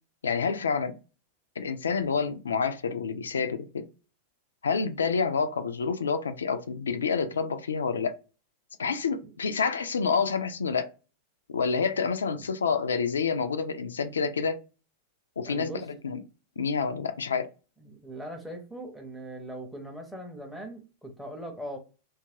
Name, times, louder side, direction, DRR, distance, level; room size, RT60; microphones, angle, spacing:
voice 1, 0.2-1.0 1.6-3.9 4.6-8.1 8.8-10.9 11.5-14.6 15.4-16.2 16.6-17.5, left 5 dB, 70° left, 0.3 m, -28 dB
voice 2, 15.4-15.9 17.8-21.8, right 1 dB, ahead, 0.6 m, -40 dB
2.8 x 2.3 x 2.7 m
figure-of-eight pair, 90°, 0 cm